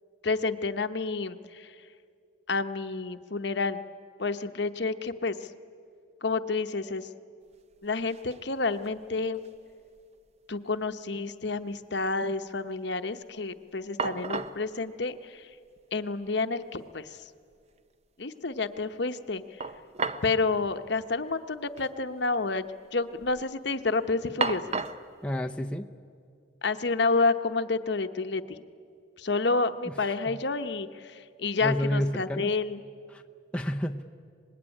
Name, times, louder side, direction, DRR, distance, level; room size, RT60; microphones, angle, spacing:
voice 1, 0.2-1.7 2.5-3.8 4.2-5.4 6.2-7.1 7.8-9.4 10.5-15.5 15.9-17.2 18.2-19.4 20.2-22.7 22.9-24.6 26.6-28.6 29.2-32.8, left 3 dB, 60° left, 9 dB, 1.0 m, -29 dB
sound 1, 7.5-7.6 7.8-8.4 8.8-9.7 10.0-10.1 13.5-13.6 14.0-14.6 15.8-15.9 16.2-16.3 19.6-20.4 20.6-20.7 21.7-21.9 22.2-22.7 23.1-23.5 24.4-25.1, right 4 dB, 30° right, 0.7 m, -33 dB
voice 2, 25.2-25.9 29.9-30.4 31.6-32.5 33.1-33.2 33.5-34.1, equal, 5° left, 2 dB, 0.6 m, -30 dB
25.0 x 20.5 x 10.0 m, 2.3 s
head